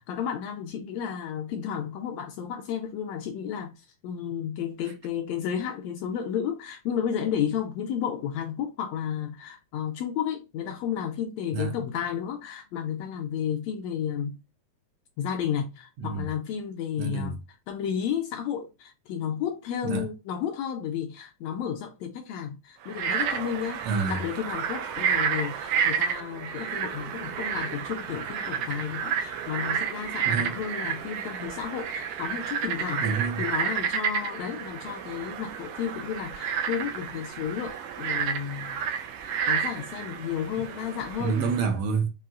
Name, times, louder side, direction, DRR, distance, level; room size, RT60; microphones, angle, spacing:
voice 1, 0.1-14.4 15.2-17.4 17.7-23.8 24.1-33.0 33.4-38.8 39.2-41.4, left 8 dB, 80° left, 1.6 m, -32 dB
voice 2, 16.0-16.3 17.0-17.4 19.8-20.1 23.8-24.2 30.2-30.6 33.0-33.5 41.2-42.1, right 5 dB, 70° right, 1.7 m, -28 dB
Frog, 22.8-41.6, right 7 dB, 90° right, 1.3 m, -31 dB
5.6 x 2.7 x 2.4 m
omnidirectional pair, 3.3 m